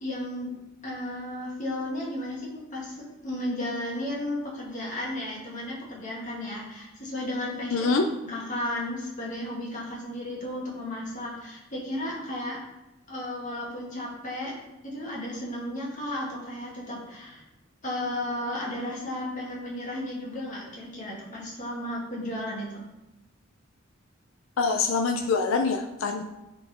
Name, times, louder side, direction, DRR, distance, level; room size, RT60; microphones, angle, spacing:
voice 1, 0.0-12.6 13.1-14.6 14.8-17.4 17.8-22.8, left 1 dB, 40° left, -4 dB, 2.3 m, -34 dB
voice 2, 7.7-8.0 24.6-26.2, left 4 dB, 90° left, 4 dB, 0.5 m, -25 dB
9.5 x 4.5 x 4.3 m, 1.0 s
head